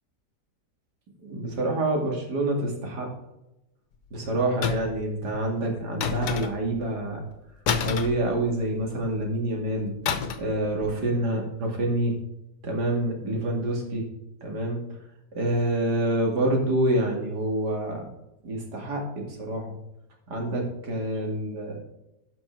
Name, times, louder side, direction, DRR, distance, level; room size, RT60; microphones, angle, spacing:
voice 1, 1.2-3.1 4.1-7.2 7.8-9.9 10.4-12.1 12.6-14.0 14.4-14.8 15.3-18.1 18.4-19.7 20.3-21.8, right 1 dB, 85° right, 1 dB, 2.9 m, -27 dB
sound 1, 4.6-5.1 6.0-6.8 7.7-8.8 10.1-10.6 10.8-11.1, left 6 dB, 90° left, 1.5 m, -28 dB
11.5 x 6.2 x 4.6 m, 0.91 s
omnidirectional pair, 1.7 m